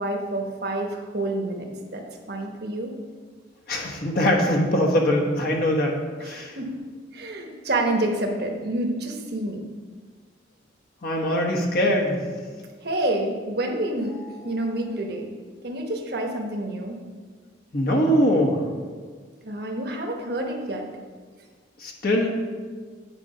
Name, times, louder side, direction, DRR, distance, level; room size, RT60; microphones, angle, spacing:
voice 1, 0.0-3.0 6.2-6.7 7.1-9.6 12.8-15.3 15.6-17.0 19.4-20.9, right 1 dB, 55° right, 2 dB, 1.1 m, -28 dB
voice 2, 3.7-6.5 11.0-12.2 17.7-18.6 21.8-22.3, equal, 50° left, -1 dB, 1.3 m, -22 dB
8.3 x 5.2 x 5.5 m, 1.5 s
head